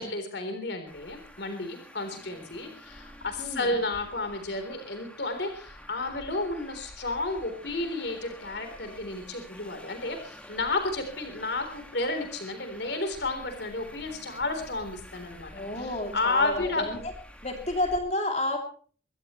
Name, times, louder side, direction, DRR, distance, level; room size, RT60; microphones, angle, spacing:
voice 1, 0.0-15.5 15.8-16.8, left 2 dB, 65° left, 6 dB, 3.8 m, -32 dB
Traffic noise roadway noise, 0.9-18.0, equal, 5° left, 2.0 m, -49 dB
voice 2, 3.4-3.7 15.5-17.1 17.4-18.6, left 1 dB, 35° left, 4 dB, 2.9 m, -30 dB
23.5 x 16.5 x 3.2 m, 0.42 s
head